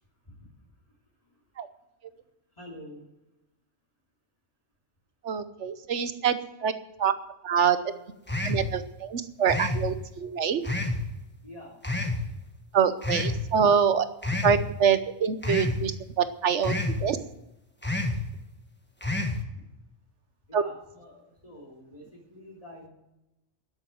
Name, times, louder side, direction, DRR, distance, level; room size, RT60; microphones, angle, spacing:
voice 1, 2.6-3.1 11.4-11.8 20.5-22.9, equal, 30° left, -4 dB, 3.2 m, -46 dB
voice 2, 5.2-6.7 7.0-7.1 7.4-7.9 8.4-10.6 12.7-14.1 14.4-16.7 17.0-17.2 20.5-20.6, right 7 dB, 75° right, 11 dB, 1.3 m, -25 dB
sound 1, 8.3-8.7 9.5-9.9 10.6-11.0 11.8-12.2 13.0-13.4 14.2-14.6 15.4-15.8 16.6-17.0 17.8-18.2 19.0-19.4, left 2 dB, 10° left, 1.3 m, -28 dB
12.5 x 8.0 x 7.8 m, 0.93 s
omnidirectional pair, 1.2 m